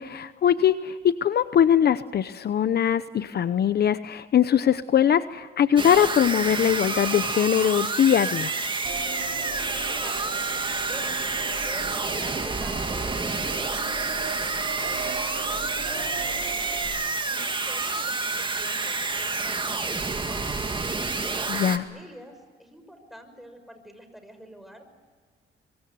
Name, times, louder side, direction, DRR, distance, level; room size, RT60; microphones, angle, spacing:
voice 1, 0.0-8.6 21.5-21.8, left 9 dB, 55° left, 13 dB, 0.8 m, -21 dB
sound 1, 5.8-21.8, right 3 dB, 25° right, 2.0 m, -29 dB
sound 2, 8.8-16.8, right 4 dB, 50° right, 7.5 m, -38 dB
voice 2, 9.7-11.2 11.6-14.3 14.8-20.7 21.4-22.3 22.6-24.8, equal, ahead, 7 dB, 5.8 m, -46 dB
23.5 x 23.5 x 9.5 m, 1.5 s
cardioid pair, 90°, 20 cm